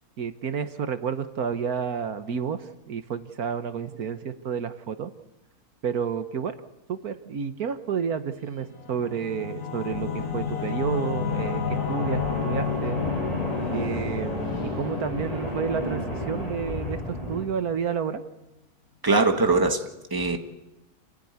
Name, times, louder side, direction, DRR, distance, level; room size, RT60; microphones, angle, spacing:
voice 1, 0.2-5.1 5.8-6.6 6.9-13.0 13.7-18.2, right 7 dB, 70° right, 9 dB, 1.6 m, -30 dB
Singing / Musical instrument, 8.6-17.8, left 6 dB, 55° left, 2.3 m, -32 dB
sound 1, 9.9-17.4, equal, 20° left, 4.5 m, -33 dB
voice 2, 19.0-20.4, right 3 dB, 15° right, 6 dB, 1.6 m, -22 dB
28.0 x 16.0 x 9.6 m, 0.96 s
omnidirectional pair, 1.6 m